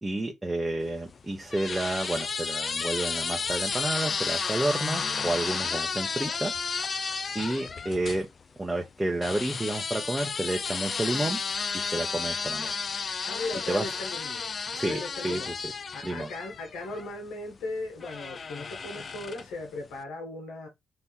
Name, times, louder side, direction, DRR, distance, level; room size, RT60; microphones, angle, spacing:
voice 1, 0.0-6.5 7.3-8.3 8.6-11.4 11.7-12.7 13.7-13.9 14.7-15.7 16.0-16.3, right 2 dB, 10° right, 0.8 m, -30 dB
sound 1, 0.9-8.2 9.2-17.1 18.0-19.6, left 5 dB, 40° left, 0.4 m, -32 dB
voice 2, 13.3-14.5 14.8-15.5 15.9-20.7, left 2 dB, 85° left, 1.4 m, -37 dB
3.5 x 2.9 x 4.3 m
cardioid pair, 90°, 0 cm